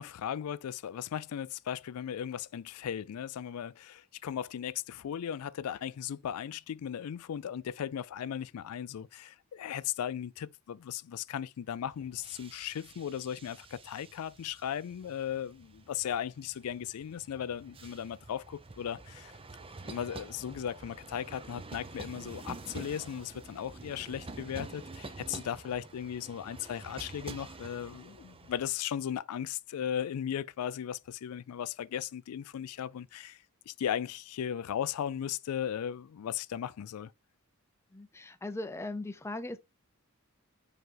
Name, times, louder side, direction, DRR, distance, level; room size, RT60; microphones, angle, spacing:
voice 1, 0.0-19.3 19.8-37.1, left 9 dB, 80° left, 0.4 m, -37 dB
sound 1, 11.8-28.7, right 3 dB, 25° right, 0.7 m, -48 dB
voice 2, 37.9-39.6, left 2 dB, 10° left, 0.5 m, -39 dB
5.3 x 5.3 x 3.7 m
head